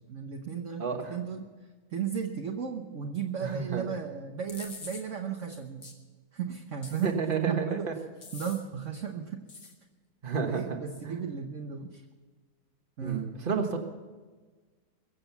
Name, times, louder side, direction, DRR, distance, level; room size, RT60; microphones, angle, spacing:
voice 1, 0.1-1.4 1.9-5.9 6.3-7.1 7.5-7.9 8.3-9.7 10.3-12.0 13.0-13.4, right 7 dB, 55° right, 2 dB, 1.2 m, -35 dB
voice 2, 0.8-1.2 3.4-3.8 7.0-7.9 10.2-10.8 11.1-11.2 13.0-13.8, right 5 dB, 35° right, 4 dB, 1.5 m, -31 dB
sound 1, 4.5-5.0 5.8-6.0 6.8-7.3 8.2-8.6 9.5-9.7, left 4 dB, 55° left, 2.0 m, -44 dB
22.5 x 7.7 x 7.0 m, 1.4 s
omnidirectional pair, 1.7 m